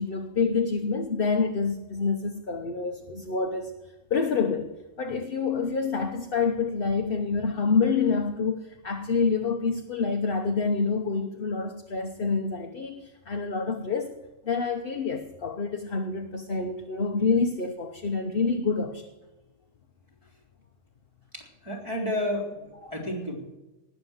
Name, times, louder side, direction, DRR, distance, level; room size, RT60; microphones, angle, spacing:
voice 1, 0.0-3.7 4.1-14.1 14.4-19.1 22.8-22.9, left 4 dB, 45° left, 4 dB, 1.1 m, -27 dB
voice 2, 21.3-23.4, left 1 dB, 20° right, -5 dB, 3.5 m, -31 dB
19.0 x 7.0 x 8.0 m, 1.1 s
omnidirectional pair, 1.4 m